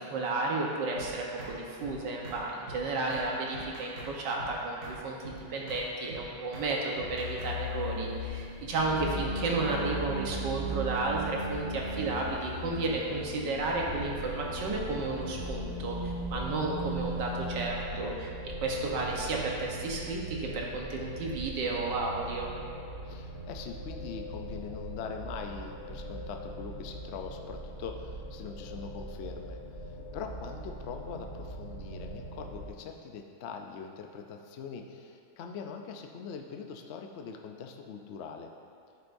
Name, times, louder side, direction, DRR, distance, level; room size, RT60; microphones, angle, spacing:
voice 1, 0.0-18.3 18.6-22.5, right 3 dB, 90° right, -2 dB, 1.7 m, -32 dB
sound 1, 1.0-1.1 1.4-1.5 1.8-2.0 2.2-2.4 2.7-2.8 3.1-3.3 3.5-4.1 4.4-4.5 4.8-5.0 5.2-5.4 5.7-5.8 6.1-6.2 6.5-6.7 7.0-7.5, right 2 dB, 50° right, 1.9 m, -44 dB
sound 2, 7.0-17.6, equal, 30° left, 1.1 m, -37 dB
sound 3, 13.7-32.7, right 1 dB, 30° right, 1.6 m, -41 dB
voice 2, 23.0-29.6 30.1-38.5, left 6 dB, 70° left, 4 dB, 0.6 m, -42 dB
9.6 x 7.9 x 2.6 m, 2.5 s
omnidirectional pair, 1.9 m